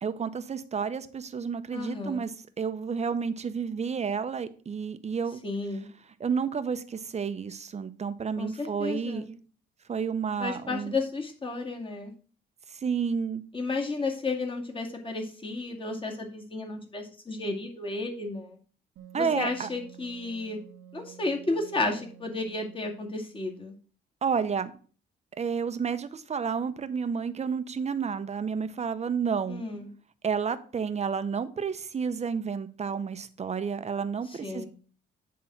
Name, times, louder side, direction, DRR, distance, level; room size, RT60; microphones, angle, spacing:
voice 1, 0.0-5.4 6.2-9.4 9.9-11.0 12.7-13.4 19.1-19.7 24.2-24.7 25.4-29.6 30.2-34.7, right 6 dB, 35° right, 12 dB, 0.8 m, -30 dB
voice 2, 1.7-2.3 5.4-5.9 8.4-9.3 10.4-12.1 13.5-18.6 19.1-20.6 20.9-23.7 29.5-29.9 34.3-34.7, left 3 dB, 25° left, 1 dB, 2.1 m, -33 dB
Wind instrument woodwind instrument, 19.0-23.4, right 10 dB, 85° right, 1.2 m, -50 dB
8.8 x 3.7 x 5.8 m, 0.41 s
cardioid pair, 90°, 20 cm